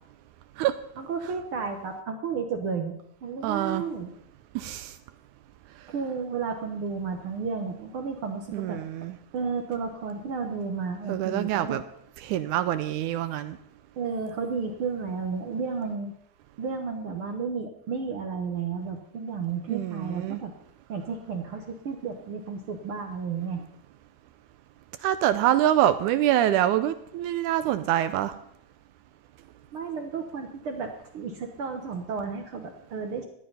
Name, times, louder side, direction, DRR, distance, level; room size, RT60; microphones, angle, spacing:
voice 1, 1.0-4.1 5.9-8.8 9.3-11.8 14.0-16.1 16.6-20.5 20.9-23.6 29.7-33.3, right 5 dB, 60° right, 4 dB, 1.6 m, -32 dB
voice 2, 3.4-3.8 4.6-4.9 8.5-9.1 11.1-11.8 12.2-13.6 19.7-20.4 25.0-28.3, right 12 dB, 80° right, 11 dB, 2.0 m, -25 dB
13.5 x 10.0 x 5.6 m, 0.73 s
omnidirectional pair, 3.6 m